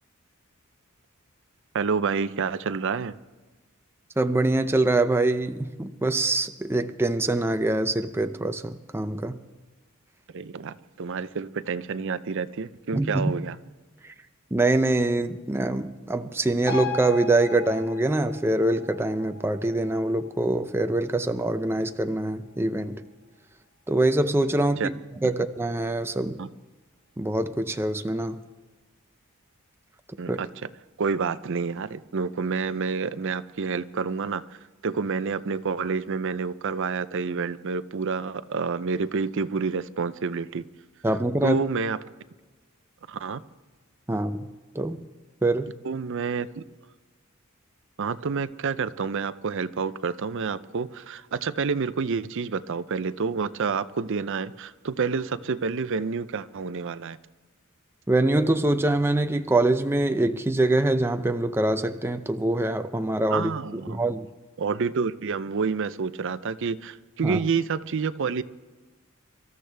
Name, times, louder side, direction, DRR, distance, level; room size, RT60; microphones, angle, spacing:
voice 1, 1.7-3.1 10.3-13.6 24.8-24.9 26.4-26.5 30.2-30.5 31.0-34.4 34.8-40.6 41.4-42.0 43.1-43.4 45.8-46.6 48.0-57.2 63.3-64.0 64.6-68.4, right 5 dB, 60° right, 14 dB, 0.5 m, -28 dB
voice 2, 4.2-9.4 12.9-13.3 14.0-14.1 14.5-23.1 23.9-26.5 27.2-28.4 30.3-30.4 41.0-41.6 44.1-44.5 44.7-45.0 45.4-45.7 58.1-64.3 67.2-67.4, right 2 dB, 10° right, 8 dB, 0.5 m, -24 dB
sound 1, 16.7-23.6 24.0-24.1, left 5 dB, 25° left, 3.3 m, -39 dB
24.5 x 13.5 x 3.4 m, 1.3 s
head